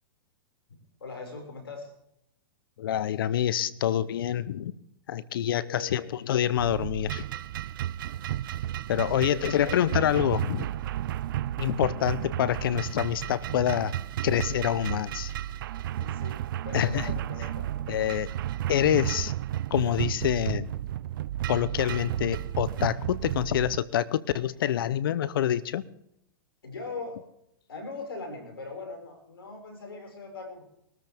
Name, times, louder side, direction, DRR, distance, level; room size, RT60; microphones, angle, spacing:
voice 1, 1.0-1.9 5.7-6.2 9.1-9.8 15.3-15.5 15.9-17.7 26.6-27.2 27.7-30.6, left 3 dB, 90° left, 4 dB, 5.6 m, -40 dB
voice 2, 2.8-4.7 5.1-7.2 8.9-10.7 11.6-13.9 14.2-15.3 16.7-17.1 17.9-18.3 18.7-19.3 19.7-20.7 21.5-25.8, left 11 dB, 70° left, 18 dB, 0.8 m, -26 dB
sound 1, 6.6-23.8, right 12 dB, 65° right, 0.5 m, -33 dB
21.5 x 13.5 x 3.5 m, 0.76 s
hypercardioid pair, 120°, 12 cm